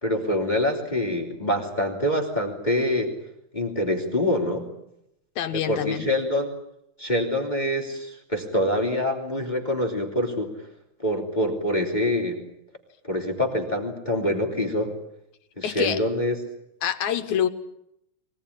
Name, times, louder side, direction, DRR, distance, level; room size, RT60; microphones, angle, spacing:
voice 1, 0.0-3.1 3.5-4.7 5.5-6.5 7.0-10.5 11.0-12.4 13.0-14.9 15.6-16.3, left 1 dB, 15° left, 2 dB, 3.2 m, -25 dB
voice 2, 5.4-6.1 15.6-16.0 16.8-17.5, left 9 dB, 70° left, 8 dB, 2.6 m, -26 dB
24.5 x 18.0 x 10.0 m, 0.79 s
omnidirectional pair, 3.5 m